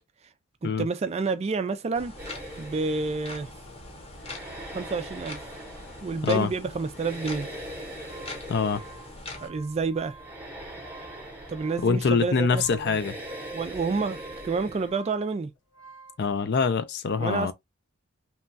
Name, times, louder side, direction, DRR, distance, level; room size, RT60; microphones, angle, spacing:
voice 1, 0.6-2.1 2.6-3.5 4.7-5.4 6.0-7.5 9.4-10.2 11.5-13.0 13.5-15.5 17.2-17.5, right 4 dB, 30° right, 0.3 m, -29 dB
sound 1, 1.9-9.5, left 2 dB, 30° left, 0.8 m, -43 dB
sound 2, 2.2-14.9, right 1 dB, 10° right, 0.8 m, -42 dB
sound 3, 8.0-16.3, right 5 dB, 70° left, 1.3 m, -51 dB
voice 2, 8.5-8.8 11.8-13.1 16.2-17.5, left 5 dB, 50° left, 0.4 m, -24 dB
3.0 x 2.3 x 2.5 m
head